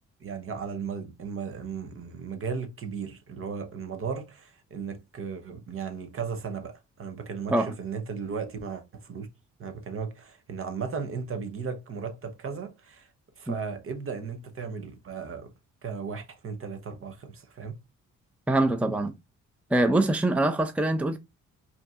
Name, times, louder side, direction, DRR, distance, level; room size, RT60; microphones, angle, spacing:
voice 1, 0.2-9.3 9.6-13.1 13.4-15.5 15.8-17.8, right 5 dB, 45° right, 0.9 m, -36 dB
voice 2, 18.5-19.1 19.7-21.2, right 2 dB, 5° right, 0.6 m, -24 dB
5.2 x 2.8 x 2.4 m
cardioid pair, 90°, 30 cm